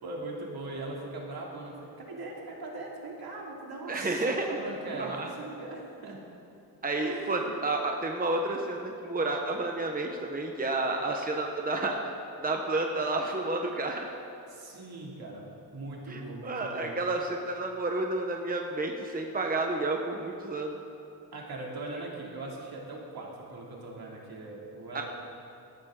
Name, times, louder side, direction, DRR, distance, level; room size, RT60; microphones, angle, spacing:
voice 1, 0.0-6.2 7.0-7.5 14.5-17.0 21.3-25.0, right 2 dB, 70° right, -3 dB, 2.9 m, -40 dB
voice 2, 3.9-4.6 4.9-5.3 6.8-12.0 12.4-14.1 16.1-20.8 24.9-25.0, right 2 dB, 25° right, 2 dB, 1.1 m, -30 dB
18.0 x 13.5 x 3.8 m, 2.6 s
wide cardioid pair, 115°, 38 cm